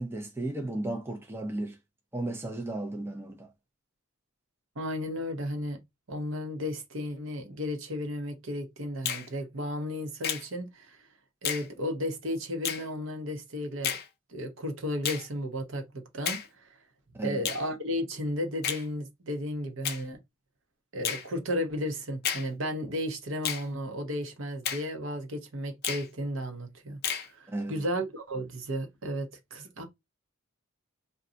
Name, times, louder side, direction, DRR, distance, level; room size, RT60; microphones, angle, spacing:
voice 1, 0.0-1.8 2.1-3.5 17.1-17.5 27.5-27.8, right 1 dB, 10° right, 0.4 m, -34 dB
voice 2, 4.8-5.8 6.1-11.0 11.4-14.0 14.3-16.7 17.2-20.2 20.9-27.0 27.3-29.8, equal, 65° right, 0.8 m, -34 dB
Finger snapping, 9.0-9.3 10.2-10.5 11.4-11.7 12.6-12.8 13.8-14.1 15.0-15.3 16.2-16.5 17.4-17.6 18.6-18.8 19.8-20.0 21.0-21.3 22.2-22.5 23.4-23.7 24.6-24.9 25.8-26.1 27.0-27.3, left 8 dB, 50° left, 0.4 m, -31 dB
2.5 x 2.2 x 3.7 m
head